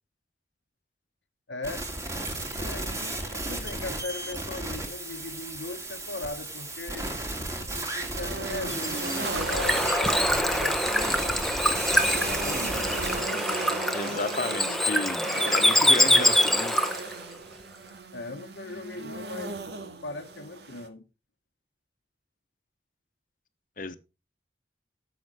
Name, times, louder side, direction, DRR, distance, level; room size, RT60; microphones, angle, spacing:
voice 1, 1.5-1.9 2.5-7.1 7.7-11.4 12.3-12.9 18.1-19.6 20.0-21.0, left 2 dB, 80° left, 1.2 m, -39 dB
sound 1, 1.6-13.2, right 2 dB, 15° right, 2.5 m, -34 dB
sound 2, 8.1-20.9, right 3 dB, 70° right, 1.9 m, -37 dB
Bird / Water, 8.7-17.1, left 1 dB, ahead, 1.0 m, -25 dB
voice 2, 13.9-16.8 23.8-24.0, left 3 dB, 50° left, 1.1 m, -33 dB
13.5 x 7.0 x 4.9 m
head